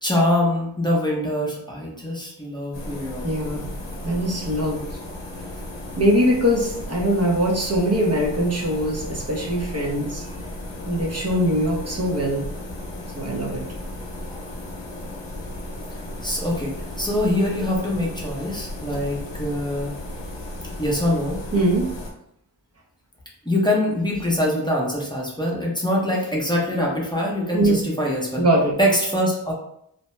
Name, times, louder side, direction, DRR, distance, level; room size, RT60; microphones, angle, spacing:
voice 1, 0.0-3.2 16.2-20.0 20.8-21.4 23.4-28.4 28.8-29.5, left 1 dB, 10° left, -4 dB, 0.7 m, -24 dB
sound 1, 2.7-22.1, left 1 dB, 90° left, 0.6 m, -35 dB
voice 2, 3.2-3.7 4.0-4.8 6.0-10.3 10.9-12.5 13.1-13.6 21.5-21.9 27.5-27.8 28.4-28.7, right 1 dB, 35° right, -2 dB, 0.7 m, -22 dB
2.7 x 2.1 x 3.1 m, 0.74 s
wide cardioid pair, 50°, 42 cm